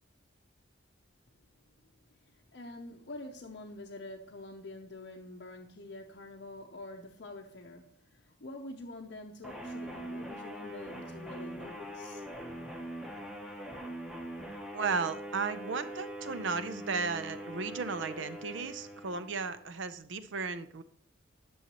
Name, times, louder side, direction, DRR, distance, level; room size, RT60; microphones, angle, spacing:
voice 1, 2.2-12.2, left 2 dB, 55° left, 0.6 m, -46 dB
sound 1, 9.4-19.7, equal, 5° right, 0.8 m, -42 dB
voice 2, 14.7-20.8, right 4 dB, 70° right, 0.6 m, -35 dB
11.0 x 6.4 x 2.9 m
head